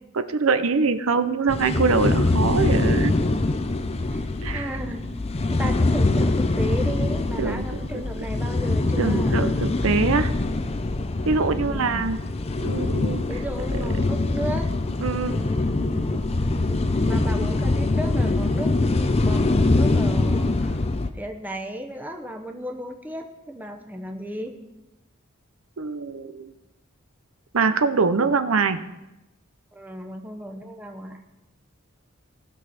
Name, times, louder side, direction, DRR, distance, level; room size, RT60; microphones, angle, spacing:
voice 1, 0.1-3.1 4.4-4.7 7.4-7.7 7.9-8.0 9.0-10.3 11.3-12.2 12.6-13.2 15.0-15.4 25.8-26.5 27.5-28.8, right 4 dB, 85° right, 10 dB, 0.7 m, -23 dB
sound 1, 1.5-21.1, left 2 dB, 30° left, 0.5 m, -23 dB
voice 2, 4.1-5.1 5.5-9.4 11.5-12.1 13.3-14.7 15.3-20.8 21.1-24.5 29.7-31.2, equal, 10° right, 4 dB, 0.9 m, -35 dB
18.0 x 6.3 x 4.2 m, 0.98 s
head